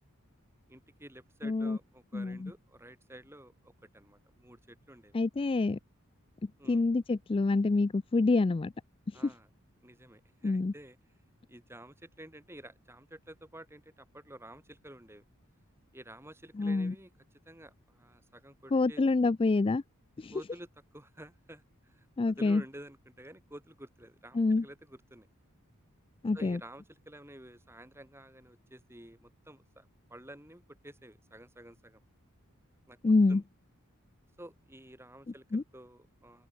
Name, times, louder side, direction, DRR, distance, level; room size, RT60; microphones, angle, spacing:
voice 1, 0.7-5.2 6.6-6.8 9.1-9.5 9.8-11.0 11.5-15.2 15.9-17.1 17.4-19.0 20.3-25.3 26.3-32.0 32.9-33.0 33.3-33.4 34.4-36.5, right 1 dB, 10° right, 6.8 m, -51 dB
voice 2, 1.4-1.8 2.1-2.5 5.1-5.8 6.7-8.7 10.4-10.7 16.6-16.9 18.7-19.8 20.2-20.3 22.2-22.6 24.3-24.6 26.2-26.6 33.0-33.4 35.5-35.6, left 3 dB, 25° left, 0.3 m, -27 dB
open air
head